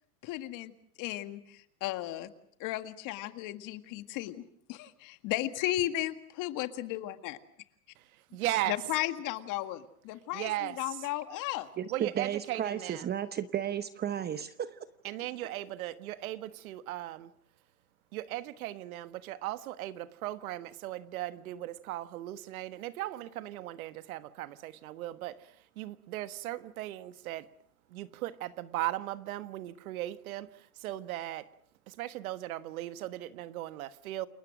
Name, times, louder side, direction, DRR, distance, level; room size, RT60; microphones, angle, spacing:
voice 1, 0.2-0.7 1.0-2.3 2.6-4.4 4.7-7.4 8.7-11.7, left 15 dB, 40° left, 1.9 m, -35 dB
voice 2, 8.1-8.8 10.3-11.0 11.9-13.2 15.0-17.3 18.1-27.5 27.9-31.5 31.9-34.3, right 15 dB, 65° right, 1.5 m, -37 dB
voice 3, 11.8-14.8, right 9 dB, 20° right, 0.9 m, -33 dB
29.5 x 21.0 x 6.3 m
hypercardioid pair, 115°, 46 cm